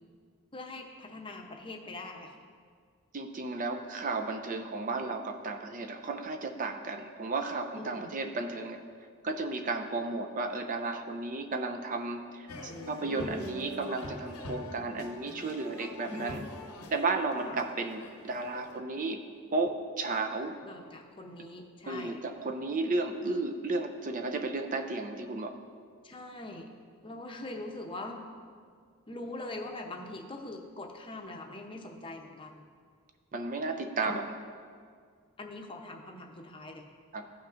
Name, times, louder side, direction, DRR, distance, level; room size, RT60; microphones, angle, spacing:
voice 1, 0.5-2.4 7.8-8.1 12.6-13.4 16.1-16.4 17.5-17.6 20.6-22.2 26.0-26.7 27.0-28.3 29.1-32.6 34.0-34.2 35.4-36.9, left 2 dB, 25° left, 2 dB, 0.7 m, -43 dB
voice 2, 3.1-8.8 9.2-16.4 16.9-19.2 19.5-20.5 21.9-25.6 33.3-34.2 37.1-37.3, right 3 dB, 35° right, 6 dB, 0.5 m, -33 dB
sound 1, 12.5-18.8, left 1 dB, 90° left, 0.8 m, -44 dB
16.0 x 5.8 x 2.5 m, 2.1 s
head